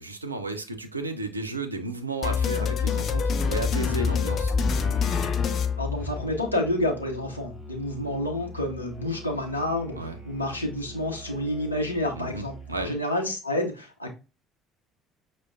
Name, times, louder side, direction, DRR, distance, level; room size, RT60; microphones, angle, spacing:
voice 1, 0.0-4.5 10.0-10.2 12.2-12.4 12.7-13.0, right 2 dB, 85° right, 0.4 m, -33 dB
sound 1, 2.2-6.5, left 5 dB, 45° left, 0.5 m, -26 dB
voice 2, 5.8-10.0 10.2-14.1, left 1 dB, 85° left, 0.8 m, -29 dB
Musical instrument, 6.0-13.0, equal, 5° left, 1.6 m, -43 dB
6.1 x 2.2 x 2.3 m
figure-of-eight pair, 55°, 0 cm